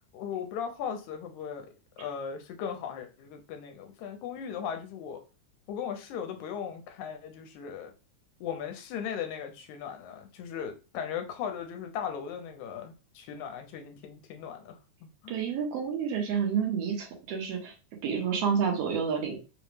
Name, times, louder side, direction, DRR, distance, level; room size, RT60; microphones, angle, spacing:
voice 1, 0.1-1.7 2.0-5.2 5.7-7.9 8.4-15.4, left 7 dB, 80° left, 5 dB, 2.0 m, -38 dB
voice 2, 15.3-17.7 18.0-19.4, right 7 dB, 65° right, 1 dB, 1.7 m, -29 dB
5.0 x 2.1 x 3.2 m, 0.32 s
omnidirectional pair, 3.5 m